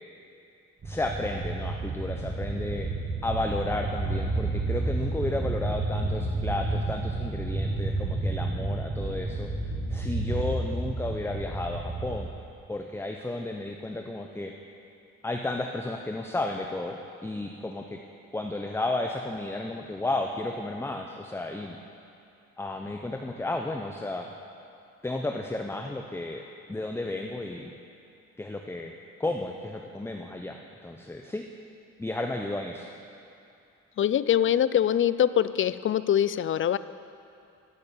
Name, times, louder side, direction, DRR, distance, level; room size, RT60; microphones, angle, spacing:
voice 1, 0.8-2.9 3.2-9.5 9.9-12.3 12.7-14.5 15.2-18.0 18.3-21.8 22.6-24.3 25.0-26.4 26.7-27.7 28.4-28.9 29.2-30.6 30.8-31.4 32.0-32.9, left 2 dB, 10° left, 3 dB, 0.7 m, -33 dB
sound 1, 0.8-12.2, right 2 dB, 35° right, 1.6 m, -30 dB
voice 2, 34.0-36.8, left 10 dB, 45° left, 15 dB, 0.4 m, -23 dB
13.5 x 6.6 x 8.7 m, 2.7 s
cardioid pair, 90°, 30 cm